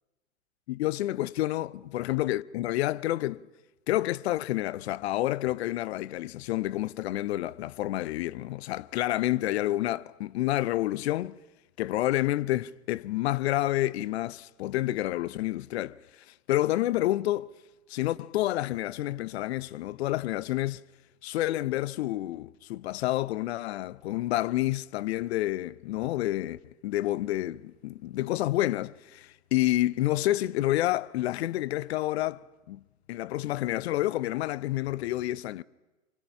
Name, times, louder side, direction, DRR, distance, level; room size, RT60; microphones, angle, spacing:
voice 1, 0.7-3.4 3.9-11.4 11.8-16.0 16.3-17.5 17.9-20.8 21.2-32.8 33.1-35.6, left 15 dB, 55° left, 0.8 m, -29 dB
30.0 x 24.5 x 5.7 m
hypercardioid pair, 105°, 38 cm